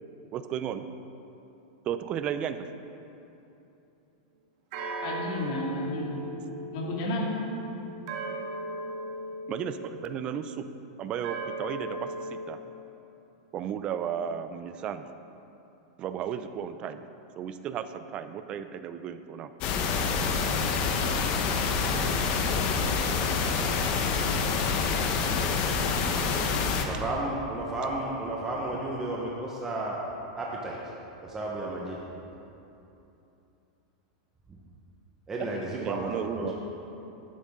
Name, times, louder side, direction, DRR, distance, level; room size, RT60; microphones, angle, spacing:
voice 1, 0.3-0.8 1.9-2.6 9.5-10.6 11.0-12.6 13.5-15.1 16.0-17.0 17.4-19.5 35.8-36.5, right 9 dB, 30° right, 11 dB, 0.4 m, -34 dB
sound 1, 4.7-10.4 11.2-12.4, right 2 dB, 50° right, 1.6 m, -38 dB
voice 2, 5.0-6.2 6.7-7.3 36.4-36.5, left 1 dB, 55° left, -3 dB, 2.5 m, -32 dB
sound 2, 19.6-26.9, left 5 dB, 40° left, 1.0 m, -27 dB
voice 3, 26.6-30.0 30.4-30.8 31.2-32.0 35.3-36.5, right 2 dB, 15° right, -3 dB, 1.0 m, -33 dB
11.5 x 10.5 x 3.7 m, 2.9 s
supercardioid pair, 150°, 3 cm